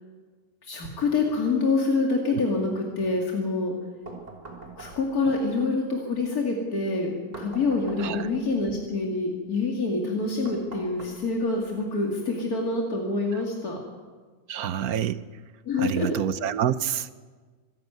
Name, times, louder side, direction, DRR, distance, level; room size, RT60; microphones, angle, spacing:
voice 1, 0.6-3.7 4.8-13.8 15.6-16.1, left 3 dB, 90° left, 0 dB, 2.9 m, -26 dB
sound 1, 4.1-5.3 7.3-8.6 10.4-11.6, right 2 dB, 25° right, 3.4 m, -42 dB
voice 2, 14.5-15.2 15.8-17.1, right 9 dB, 80° right, 14 dB, 1.4 m, -28 dB
25.5 x 13.0 x 9.3 m, 1.4 s
omnidirectional pair, 1.5 m